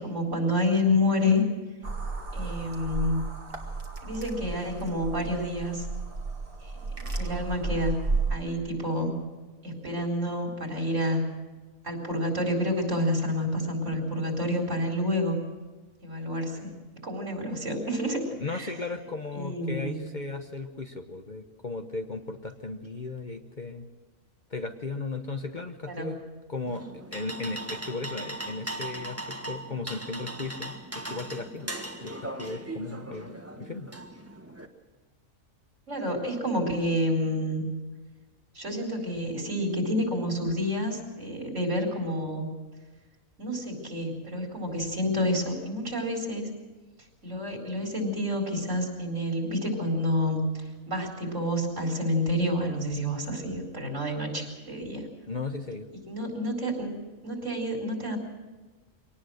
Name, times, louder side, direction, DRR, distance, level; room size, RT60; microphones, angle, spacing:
voice 1, 0.0-1.4 2.3-3.3 4.0-5.9 6.6-6.8 7.1-8.0 8.3-9.1 9.6-11.3 11.8-15.4 16.0-16.7 17.0-18.2 18.5-18.7 19.3-20.0 25.9-26.2 35.9-37.6 38.5-42.5 43.4-46.5 47.2-55.1 56.1-56.9 57.2-58.2, left 1 dB, 65° right, 1 dB, 4.7 m, -29 dB
sound 1, 1.8-8.4, right 3 dB, 40° right, 2.3 m, -33 dB
voice 2, 18.4-23.9 24.5-26.2 26.5-31.7 32.0-33.9 55.3-55.9, left 3 dB, 40° left, 6 dB, 1.1 m, -36 dB
sound 2, 26.7-34.7, right 1 dB, 10° right, 1.6 m, -39 dB
23.5 x 18.5 x 6.4 m, 1.2 s
omnidirectional pair, 1.4 m